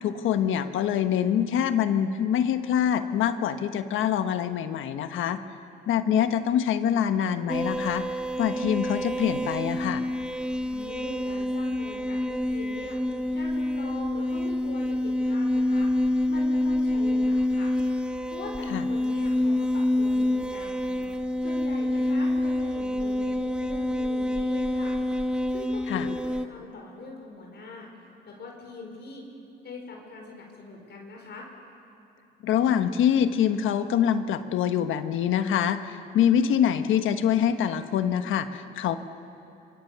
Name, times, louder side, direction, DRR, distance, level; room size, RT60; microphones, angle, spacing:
voice 1, 0.0-5.4 5.9-8.1 8.4-10.0 18.7-18.8 25.9-26.1 32.4-39.0, left 9 dB, 80° left, 9 dB, 1.3 m, -25 dB
sound 1, 7.5-26.5, left 1 dB, 5° right, 1.3 m, -27 dB
voice 2, 10.7-13.0 13.3-15.9 16.3-17.7 18.3-20.9 21.4-25.0 25.5-26.2 26.5-27.9 28.2-29.2 29.6-31.5, left 3 dB, 60° left, 0 dB, 4.6 m, -42 dB
27.5 x 24.0 x 6.9 m, 2.7 s
cardioid pair, 90°, 20 cm